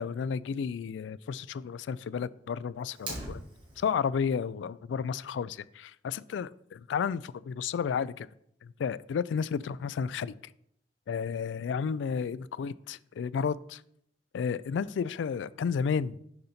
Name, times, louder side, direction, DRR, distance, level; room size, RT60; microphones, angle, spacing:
voice 1, 0.0-3.4 3.8-6.5 6.9-8.3 8.6-10.5 11.1-13.8 14.3-16.2, left 6 dB, 85° left, 19 dB, 0.3 m, -32 dB
Fire, 2.9-3.9, right 1 dB, 30° right, 2.3 m, -40 dB
6.5 x 4.2 x 5.6 m, 0.72 s
head